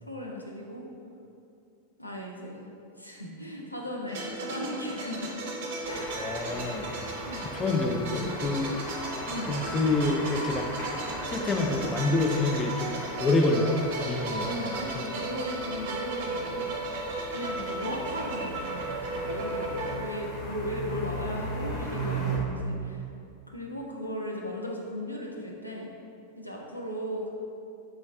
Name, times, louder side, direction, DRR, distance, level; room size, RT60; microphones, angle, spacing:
voice 1, 0.0-0.9 2.0-2.7 3.0-5.5 5.8-6.2 7.2-7.5 9.3-9.6 14.4-16.9 17.3-23.0 23.5-25.9 26.4-27.3, equal, 85° left, -1 dB, 0.4 m, -36 dB
sound 1, 4.1-20.0, right 2 dB, 50° right, 0.6 m, -35 dB
sound 2, 5.8-22.4, right 1 dB, 40° left, 0.7 m, -39 dB
voice 2, 6.2-7.0 7.5-8.7 9.5-10.7 11.3-14.5, left 2 dB, 20° left, 2 dB, 0.3 m, -27 dB
3.4 x 3.0 x 3.4 m, 2.6 s
figure-of-eight pair, 90°, 0 cm